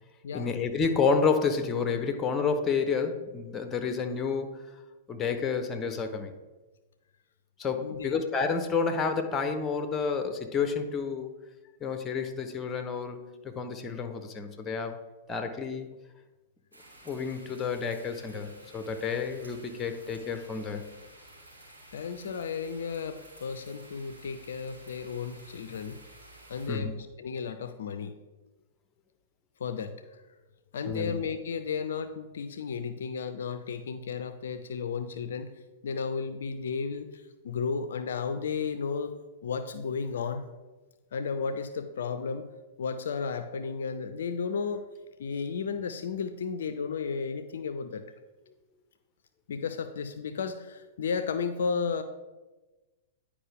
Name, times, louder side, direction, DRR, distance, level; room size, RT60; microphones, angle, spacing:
voice 1, 0.3-4.5 5.1-6.3 7.6-11.3 11.8-15.0 15.3-15.9 17.0-20.9 26.7-26.9 30.9-31.1, left 5 dB, 20° left, 8 dB, 0.8 m, -30 dB
voice 2, 7.8-8.2 21.9-26.0 26.5-26.9 27.2-28.2 29.6-30.2 30.7-35.5 35.8-39.2 39.4-40.5 41.1-42.5 42.8-44.9 45.2-48.0 49.5-52.0, left 5 dB, 70° left, 10 dB, 0.4 m, -33 dB
sound 1, 16.7-26.7, right 1 dB, 85° right, 2.7 m, -52 dB
9.9 x 4.8 x 3.5 m, 1.2 s
figure-of-eight pair, 105°, 0 cm